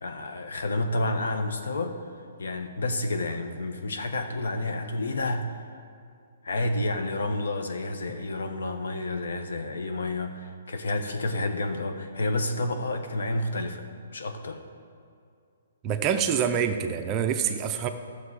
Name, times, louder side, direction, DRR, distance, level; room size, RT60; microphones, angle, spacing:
voice 1, 0.0-2.0 2.4-5.6 6.4-14.6, left 2 dB, 80° left, 6 dB, 1.1 m, -30 dB
voice 2, 15.8-17.9, right 8 dB, 20° right, 6 dB, 0.5 m, -26 dB
12.5 x 6.5 x 4.9 m, 2.4 s
hypercardioid pair, 165°, 0 cm